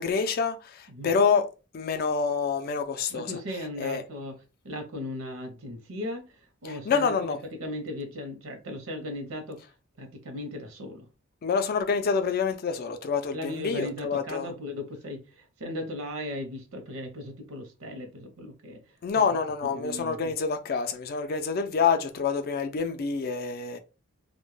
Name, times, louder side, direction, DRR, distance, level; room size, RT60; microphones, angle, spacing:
voice 1, 0.0-1.4 1.7-3.3 3.8-4.0 6.9-7.4 11.4-14.5 19.0-23.8, left 5 dB, 45° left, 0.4 m, -27 dB
voice 2, 3.1-4.4 4.6-9.6 10.0-11.1 13.3-18.8 19.1-19.4 19.7-20.3, left 1 dB, 80° right, 0.7 m, -37 dB
2.1 x 2.1 x 3.1 m
head